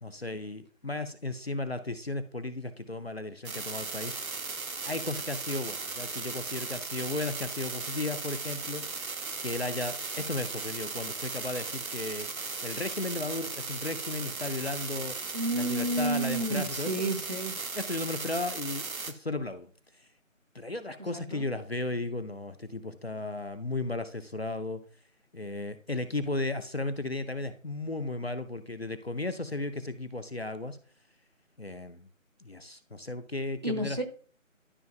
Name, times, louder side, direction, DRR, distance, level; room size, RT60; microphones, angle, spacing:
voice 1, 0.0-4.4 4.8-8.8 9.4-15.2 15.5-16.9 17.7-19.7 20.5-24.8 25.3-30.8 31.6-32.1 32.4-34.0, left 2 dB, 50° left, 10 dB, 0.6 m, -35 dB
sound 1, 3.4-19.1, right 4 dB, 85° right, 1.0 m, -37 dB
voice 2, 15.3-17.5 21.1-21.4 33.6-34.0, right 1 dB, 30° right, 4 dB, 1.0 m, -30 dB
12.5 x 5.5 x 2.4 m, 0.43 s
figure-of-eight pair, 170°, 41 cm